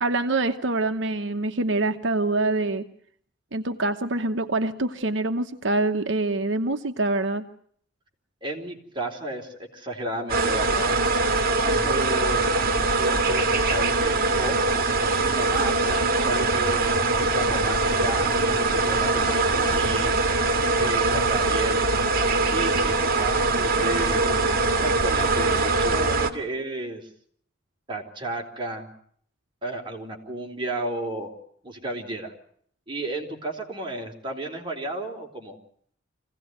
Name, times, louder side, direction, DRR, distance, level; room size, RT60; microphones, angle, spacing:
voice 1, 0.0-2.9 3.5-7.5, right 2 dB, 65° right, 7 dB, 1.0 m, -25 dB
voice 2, 8.4-11.0 11.6-12.4 12.9-14.6 15.2-20.2 20.8-21.8 22.5-24.5 24.8-27.1 27.9-28.9 29.6-31.4 31.6-32.3 32.9-35.6, right 1 dB, 25° right, 1 dB, 3.9 m, -33 dB
sound 1, 10.3-26.3, right 3 dB, 50° right, 2.0 m, -22 dB
25.5 x 17.0 x 9.3 m, 0.63 s
head